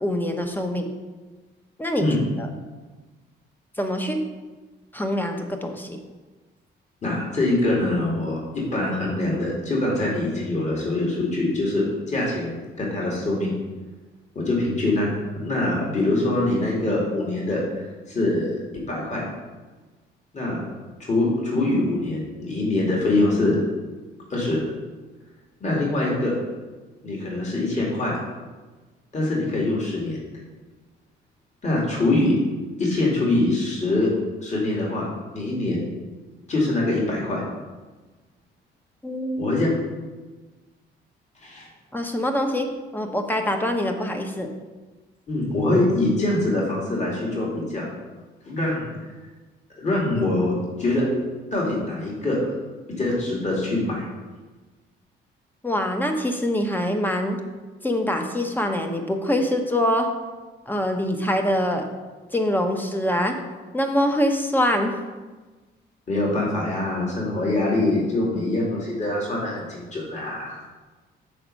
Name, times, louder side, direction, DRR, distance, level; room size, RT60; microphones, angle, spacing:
voice 1, 0.0-0.9 1.8-2.1 2.4-2.5 3.8-4.2 4.9-6.0 39.0-39.5 41.9-44.5 55.6-57.4 57.8-60.1 60.7-61.9 62.3-63.4 63.7-65.0, left 1 dB, 10° left, 5 dB, 1.0 m, -24 dB
voice 2, 7.0-13.5 14.4-17.8 18.1-19.2 20.3-20.6 21.0-23.6 24.3-24.6 25.6-26.3 27.0-28.1 29.1-30.2 31.6-32.3 32.8-34.1 34.4-35.1 35.3-35.8 36.5-37.4 39.4-39.7 41.4-41.7 45.3-47.9 48.5-48.9 49.8-51.0 51.5-52.4 52.9-54.1 66.1-70.6, left 2 dB, 35° left, -4 dB, 2.3 m, -24 dB
6.6 x 4.3 x 6.3 m, 1.3 s
cardioid pair, 90°, 20 cm